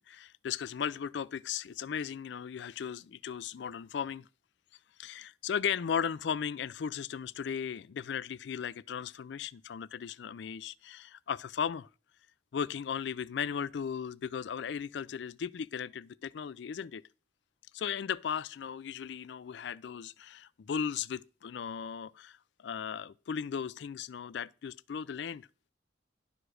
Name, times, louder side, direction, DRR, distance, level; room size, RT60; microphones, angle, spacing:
voice 1, 0.1-4.3 5.0-11.9 12.5-17.0 17.7-25.5, left 7 dB, 65° left, 0.4 m, -36 dB
11.0 x 4.9 x 6.2 m
head